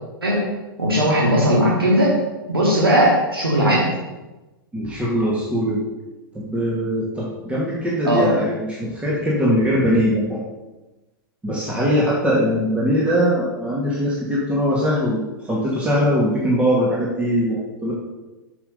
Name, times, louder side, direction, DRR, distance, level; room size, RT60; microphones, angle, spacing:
voice 1, 0.8-2.1 2.5-3.8 8.0-8.3, equal, 85° right, -4 dB, 2.5 m, -17 dB
voice 2, 4.7-5.8 6.3-10.4 11.4-17.9, equal, 10° right, -5 dB, 2.2 m, -21 dB
8.6 x 6.2 x 5.2 m, 1.1 s
figure-of-eight pair, 105°, 12 cm